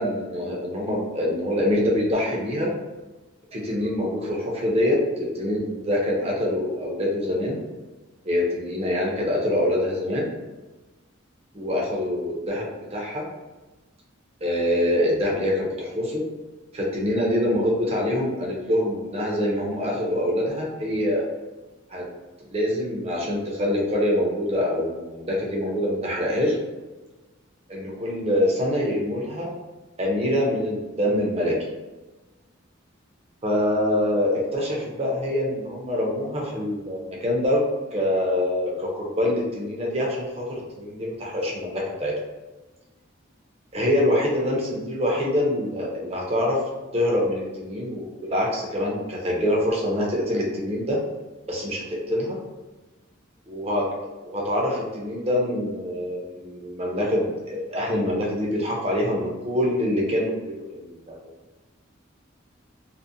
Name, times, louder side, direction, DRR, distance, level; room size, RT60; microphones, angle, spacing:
voice 1, 0.0-2.7 3.5-7.6 8.2-10.3 11.5-12.7 12.9-13.3 14.4-16.2 16.7-21.2 21.9-22.0 22.5-26.6 27.7-29.5 30.0-31.6 33.4-37.6 37.9-42.1 43.7-46.6 46.9-51.0 51.5-52.4 53.5-53.8 54.2-61.2, left 1 dB, 30° right, -2 dB, 0.6 m, -25 dB
2.5 x 2.1 x 2.7 m, 1.2 s
head